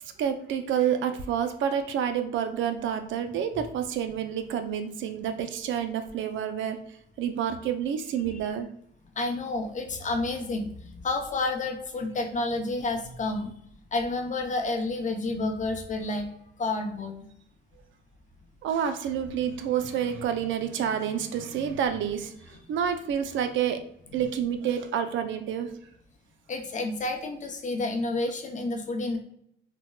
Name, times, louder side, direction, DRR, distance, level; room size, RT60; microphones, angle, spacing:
voice 1, 0.2-6.8 7.2-8.7 18.6-23.8 24.1-25.7, right 8 dB, 75° right, 8 dB, 0.4 m, -28 dB
voice 2, 9.2-13.5 13.9-16.3 16.6-17.2 26.5-29.2, left 2 dB, 40° left, 3 dB, 0.6 m, -30 dB
4.1 x 2.2 x 2.2 m, 0.70 s
cardioid pair, 90°, 20 cm